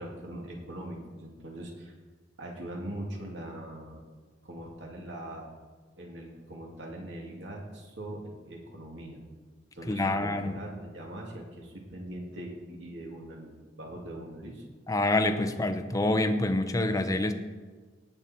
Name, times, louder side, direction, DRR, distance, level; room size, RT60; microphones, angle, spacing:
voice 1, 0.0-1.9 2.4-4.0 4.4-5.5 6.0-9.2 9.7-14.6, right 1 dB, 80° right, -1 dB, 2.7 m, -41 dB
voice 2, 9.9-10.6 14.9-17.3, left 2 dB, 20° left, 6 dB, 0.8 m, -26 dB
18.5 x 6.9 x 4.5 m, 1.4 s
head